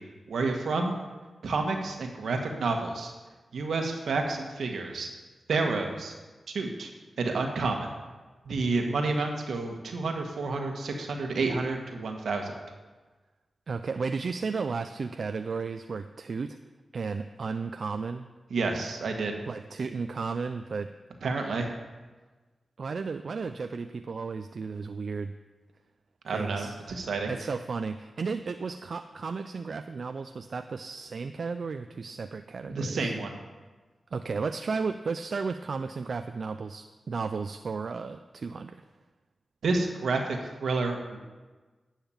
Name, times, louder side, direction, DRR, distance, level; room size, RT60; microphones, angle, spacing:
voice 1, 0.3-1.0 1.4-3.1 3.5-5.1 5.5-6.1 6.5-6.9 7.2-7.9 8.4-12.5 18.5-19.4 21.2-21.7 26.2-27.3 32.6-33.4 39.6-41.2, right 3 dB, 85° right, 3 dB, 1.4 m, -29 dB
voice 2, 13.7-16.6 16.9-18.3 19.5-20.9 22.8-25.3 26.3-26.8 27.3-33.1 34.1-38.8, right 4 dB, 65° right, 8 dB, 0.4 m, -34 dB
10.5 x 5.7 x 7.1 m, 1.3 s
cardioid pair, 55°, 0 cm